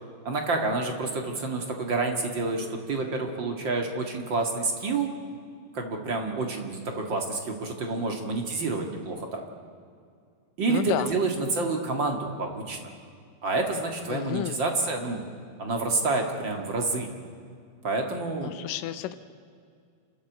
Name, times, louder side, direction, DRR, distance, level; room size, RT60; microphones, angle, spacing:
voice 1, 0.2-5.1 5.7-9.4 10.6-12.9 13.4-15.2 15.6-17.1 17.8-18.5, right 3 dB, 40° right, 3 dB, 1.8 m, -28 dB
voice 2, 10.7-11.1 14.1-14.6 18.4-19.1, left 13 dB, 80° left, 10 dB, 1.9 m, -31 dB
29.0 x 13.5 x 8.1 m, 2.3 s
omnidirectional pair, 4.7 m